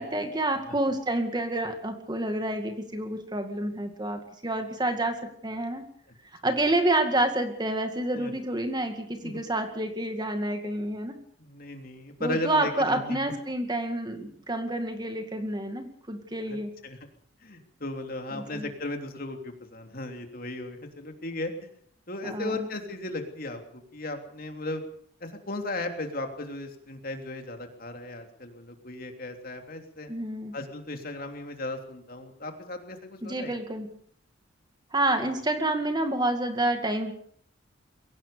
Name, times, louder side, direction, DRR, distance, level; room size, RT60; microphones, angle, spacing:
voice 1, 0.0-5.8 6.4-11.2 12.2-16.7 18.3-18.7 22.2-22.7 30.1-30.6 33.2-33.9 34.9-37.1, right 1 dB, 20° right, 6 dB, 2.1 m, -28 dB
voice 2, 11.4-13.2 16.5-17.0 17.4-21.7 22.1-24.8 25.2-30.1 30.5-33.5, left 2 dB, 45° left, 5 dB, 3.2 m, -36 dB
22.5 x 17.5 x 6.9 m, 0.63 s
head